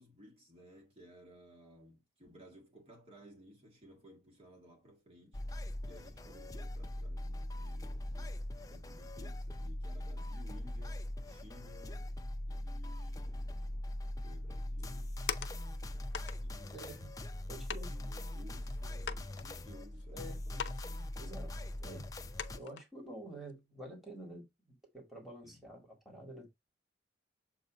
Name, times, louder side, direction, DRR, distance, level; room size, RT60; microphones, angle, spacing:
voice 1, 0.0-5.4 5.8-8.4 8.7-12.1 12.5-13.6 14.2-15.1 16.4-17.1 17.8-20.7 25.4-25.6, equal, 35° right, 1.9 m, -58 dB
sound 1, 5.3-22.6, left 1 dB, 20° left, 0.5 m, -41 dB
sound 2, 14.8-15.8 16.1-16.4 17.2-17.3 17.7-17.9 18.5-18.6 19.0-20.0 20.5-20.9 21.1-21.2 21.8-21.9 22.4-22.8 23.3-23.5, left 7 dB, 80° left, 0.6 m, -41 dB
voice 2, 16.7-17.1 17.5-17.9 20.1-20.4 21.2-21.5 21.8-22.1 22.6-26.5, right 1 dB, ahead, 2.0 m, -48 dB
7.2 x 2.8 x 5.0 m
head